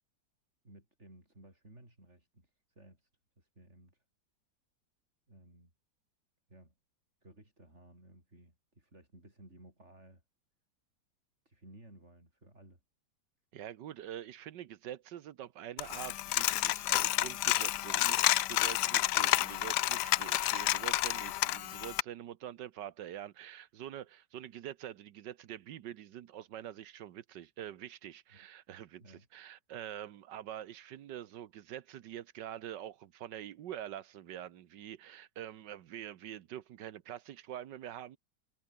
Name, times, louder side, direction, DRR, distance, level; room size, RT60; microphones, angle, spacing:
voice 1, 0.6-3.1 3.4-4.0 5.3-5.7 6.5-6.7 7.2-10.2 11.5-12.8 28.3-28.5 29.0-29.3, right 1 dB, 40° right, 7.7 m, -57 dB
voice 2, 13.5-38.2, right 11 dB, 85° right, 1.6 m, -45 dB
Coin (dropping), 15.8-22.0, left 15 dB, 75° left, 1.2 m, -30 dB
omnidirectional pair, 1.9 m